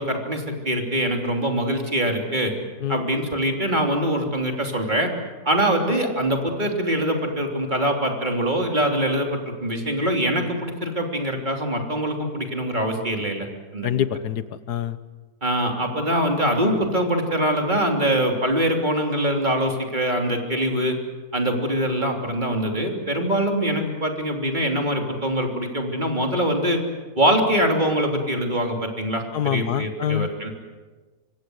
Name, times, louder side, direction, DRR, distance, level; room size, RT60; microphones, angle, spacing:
voice 1, 0.0-2.5 2.9-5.1 5.4-13.5 13.7-13.9 15.4-21.0 21.3-26.8 27.2-30.5, right 1 dB, 30° right, 2 dB, 3.4 m, -23 dB
voice 2, 13.8-15.0 29.3-30.3, left 10 dB, 80° left, 13 dB, 1.6 m, -25 dB
25.5 x 24.5 x 8.0 m, 1.3 s
omnidirectional pair, 1.7 m